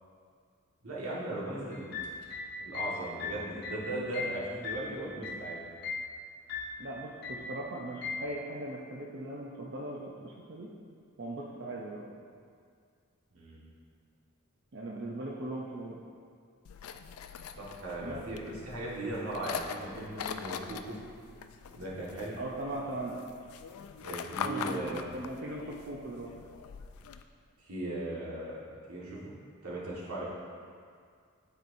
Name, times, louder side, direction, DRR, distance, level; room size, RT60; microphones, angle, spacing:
voice 1, 0.8-1.9 2.6-5.6 13.3-13.6 17.6-21.0 21.7-22.4 24.0-25.0 27.6-28.6 28.9-29.3 29.6-30.2, right 1 dB, 90° right, -6 dB, 1.6 m, -38 dB
sound 1, 1.7-5.5 5.8-6.1 6.5-6.8 7.2-7.5 8.0-8.3, left 4 dB, 50° left, 1.0 m, -38 dB
voice 2, 6.8-10.7 11.2-12.1 14.7-16.0 18.0-18.2 22.4-23.2 24.4-26.3, right 1 dB, 50° right, -3 dB, 0.6 m, -39 dB
sound 2, 16.6-27.2, left 6 dB, 80° left, 0.3 m, -42 dB
11.0 x 4.4 x 2.6 m, 2.2 s
head